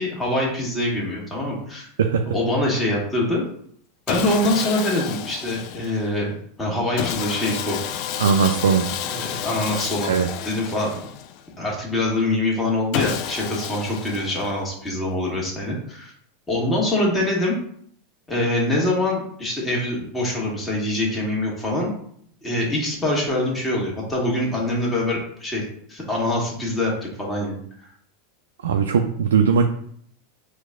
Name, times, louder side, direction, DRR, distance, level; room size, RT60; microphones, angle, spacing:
voice 1, 0.0-1.9 2.3-3.4 4.1-7.8 9.0-10.1 10.4-10.9 11.6-16.1 16.5-17.6 18.3-21.9 22.4-27.9, left 1 dB, 10° left, -3 dB, 1.4 m, -24 dB
voice 2, 2.0-2.3 8.2-8.9 10.1-10.3 28.6-29.6, right 6 dB, 75° right, 4 dB, 0.3 m, -19 dB
Sawing, 4.1-6.1 7.0-11.5 12.9-14.7, left 10 dB, 50° left, 0.3 m, -30 dB
4.5 x 2.2 x 3.7 m, 0.64 s
figure-of-eight pair, 85°, 0 cm